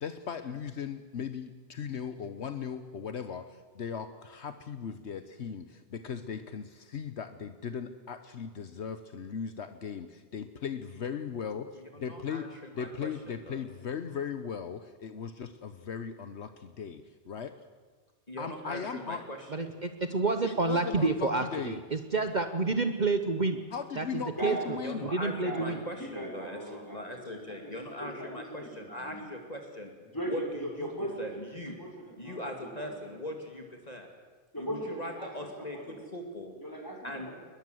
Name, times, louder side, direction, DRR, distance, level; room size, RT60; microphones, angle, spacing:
voice 1, 0.0-12.5 12.7-17.5 18.4-19.2 20.4-21.8 23.7-25.1, left 7 dB, 70° left, 10 dB, 1.2 m, -38 dB
voice 2, 12.0-12.5 12.8-13.1 13.5-13.6 18.3-19.4 24.8-29.9 30.3-30.4 30.8-30.9 31.2-31.8 32.2-34.1 34.6-36.5 37.0-37.3, left 1 dB, 35° left, 3 dB, 2.5 m, -40 dB
voice 3, 19.5-23.6 24.0-24.1 24.4-24.6 25.0-25.8, right 3 dB, 40° right, 8 dB, 1.1 m, -29 dB
voice 4, 24.1-24.7 25.3-29.2 30.0-31.4 31.8-33.1 34.5-36.0 36.6-37.3, right 1 dB, 15° left, -1 dB, 6.2 m, -39 dB
21.5 x 21.0 x 7.9 m, 1.4 s
omnidirectional pair, 1.2 m